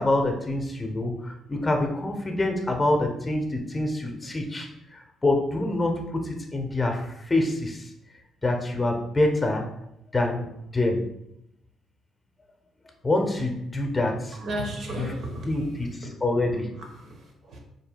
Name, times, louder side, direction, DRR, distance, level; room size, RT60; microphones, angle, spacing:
voice 1, 0.0-7.8 8.4-9.7 10.1-11.1 13.0-14.4 15.0-15.1 15.5-16.7, left 2 dB, 20° left, 4 dB, 0.7 m, -26 dB
voice 2, 14.3-15.7 16.0-16.2 16.7-17.6, right 1 dB, 65° right, 1 dB, 1.0 m, -35 dB
4.7 x 3.2 x 2.3 m, 0.80 s
cardioid pair, 100°, 0 cm